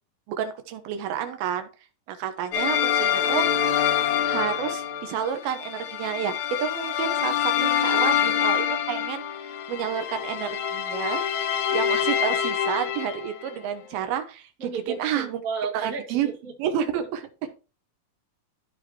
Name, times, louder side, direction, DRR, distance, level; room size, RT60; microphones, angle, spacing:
voice 1, 0.3-1.7 2.1-3.9 4.2-9.2 9.5-11.2 11.7-15.4 15.7-16.3 16.6-17.5, right 9 dB, 90° right, 8 dB, 2.9 m, -30 dB
sound 1, 2.5-13.5, left 9 dB, 70° left, 1.8 m, -26 dB
voice 2, 7.6-8.3 14.6-16.5, right 5 dB, 30° right, -1 dB, 1.7 m, -34 dB
14.0 x 5.1 x 3.0 m, 0.34 s
omnidirectional pair, 4.2 m